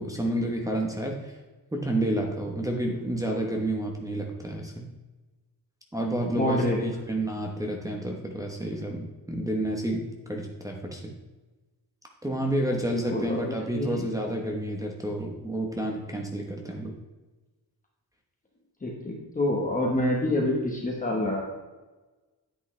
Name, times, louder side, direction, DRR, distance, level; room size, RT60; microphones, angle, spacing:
voice 1, 0.0-1.4 1.7-4.9 5.9-11.1 12.2-16.9, right 1 dB, 10° right, 1 dB, 1.0 m, -30 dB
voice 2, 6.3-6.9 13.1-14.1 18.8-21.4, left 1 dB, 20° left, -2 dB, 1.2 m, -27 dB
9.7 x 8.5 x 3.3 m, 1.2 s
wide cardioid pair, 175°, 38 cm